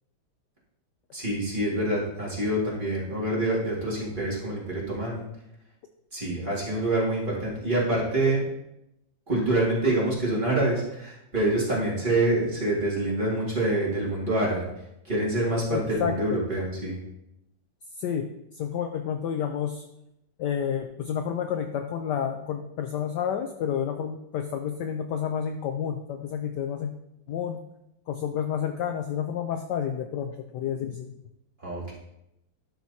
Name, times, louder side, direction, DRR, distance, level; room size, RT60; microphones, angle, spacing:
voice 1, 1.1-5.2 6.1-8.4 9.3-14.6 15.1-17.0 31.6-31.9, right 1 dB, 25° right, -5 dB, 2.1 m, -26 dB
voice 2, 15.7-16.4 18.0-19.8 20.4-26.9 27.3-27.6 28.1-31.1, left 8 dB, 75° left, 6 dB, 1.0 m, -30 dB
11.5 x 6.0 x 2.7 m, 0.85 s
omnidirectional pair, 2.2 m